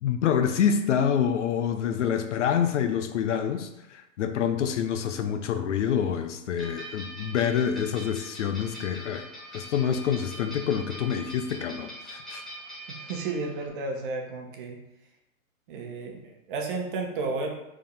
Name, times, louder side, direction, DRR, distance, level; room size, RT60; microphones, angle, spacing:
voice 1, 0.0-9.3 9.5-12.4, left 8 dB, 55° left, 8 dB, 0.7 m, -27 dB
sound 1, 6.6-13.7, right 1 dB, ahead, 0.5 m, -43 dB
voice 2, 12.9-14.8 15.7-17.5, right 3 dB, 35° right, 2 dB, 1.0 m, -32 dB
4.9 x 3.8 x 5.3 m, 0.88 s
hypercardioid pair, 160°, 43 cm